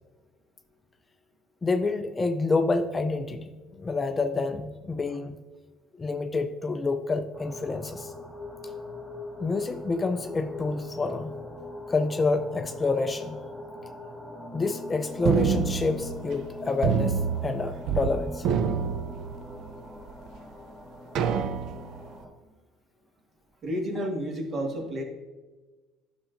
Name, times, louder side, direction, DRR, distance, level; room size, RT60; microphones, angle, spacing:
voice 1, 1.6-5.4 6.0-8.1 9.4-11.4 11.9-13.4 14.5-17.2 17.4-18.5, left 3 dB, 20° left, 7 dB, 0.4 m, -28 dB
sound 1, 7.3-22.3, left 2 dB, 5° left, 1.0 m, -42 dB
sound 2, 15.3-16.5 16.8-18.1 18.4-19.7 20.3-20.4 21.2-22.0, right 7 dB, 60° right, 0.5 m, -27 dB
voice 2, 23.6-25.0, equal, 40° right, 1 dB, 1.7 m, -30 dB
11.0 x 6.2 x 2.5 m, 1.2 s
cardioid pair, 120°, 0 cm